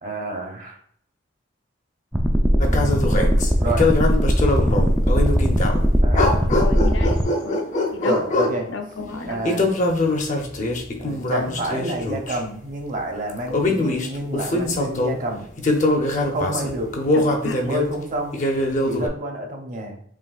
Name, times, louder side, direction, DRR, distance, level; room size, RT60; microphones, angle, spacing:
voice 1, 0.0-0.8 2.7-3.9 6.0-6.5 8.1-8.7 9.3-9.7 11.0-15.4 16.3-16.9 17.6-18.4 18.8-20.0, right 1 dB, 45° right, 2 dB, 0.8 m, -29 dB
sound 1, 2.1-7.2, equal, 5° right, 0.3 m, -19 dB
sound 2, 2.6-5.8 6.1-8.6 9.4-12.4 13.3-15.2 15.6-17.9 18.3-19.1, left 2 dB, 40° left, 0.6 m, -23 dB
voice 2, 6.5-7.6 7.9-8.2 8.7-9.4 17.1-17.6, left 4 dB, 85° left, 4 dB, 0.7 m, -32 dB
5.0 x 3.2 x 2.4 m, 0.62 s
head